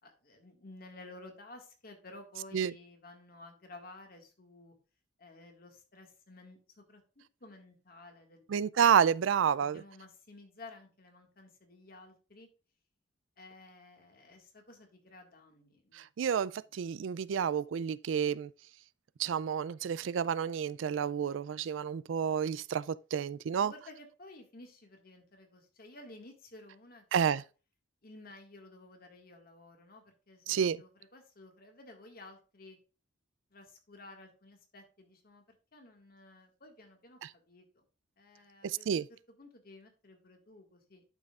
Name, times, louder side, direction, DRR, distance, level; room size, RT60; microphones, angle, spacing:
voice 1, 0.0-4.8 5.2-8.4 9.6-12.5 13.4-16.1 23.6-27.4 28.0-32.8 33.5-37.2 37.5-37.7 38.2-41.0, left 2 dB, 50° left, 1.9 m, -54 dB
voice 2, 8.5-9.8 15.9-18.5 19.2-23.7 27.1-27.4 30.5-30.8 38.6-39.0, right 7 dB, 85° right, 0.4 m, -30 dB
11.5 x 5.5 x 2.4 m
head